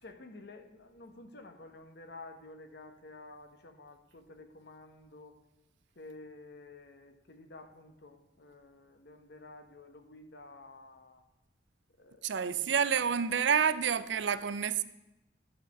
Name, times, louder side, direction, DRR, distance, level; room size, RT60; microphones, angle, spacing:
voice 1, 0.0-5.4 5.9-11.2 12.0-12.9, left 2 dB, 60° left, 1.1 m, -51 dB
voice 2, 12.2-14.8, right 7 dB, 65° right, 0.5 m, -28 dB
11.5 x 4.4 x 8.1 m
head